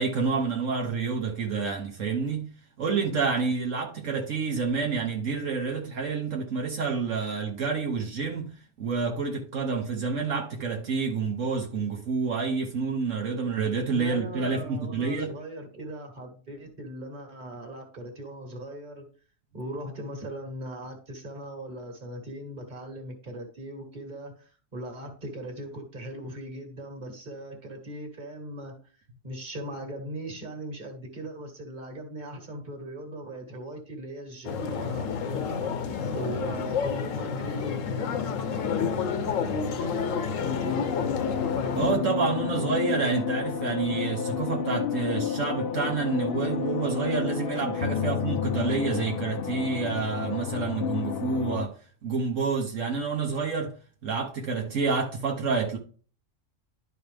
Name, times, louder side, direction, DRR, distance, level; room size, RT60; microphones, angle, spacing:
voice 1, 0.0-2.5 2.8-8.5 8.8-15.3 41.7-51.7 52.0-53.7 54.0-55.8, right 4 dB, 75° right, 1.4 m, -28 dB
voice 2, 13.9-19.0 19.5-41.4, right 1 dB, 35° right, 1.8 m, -39 dB
sound 1, 34.4-41.9, left 6 dB, 75° left, 1.1 m, -30 dB
sound 2, 40.4-51.7, left 7 dB, 60° left, 0.6 m, -30 dB
11.5 x 4.6 x 3.4 m
omnidirectional pair, 1.3 m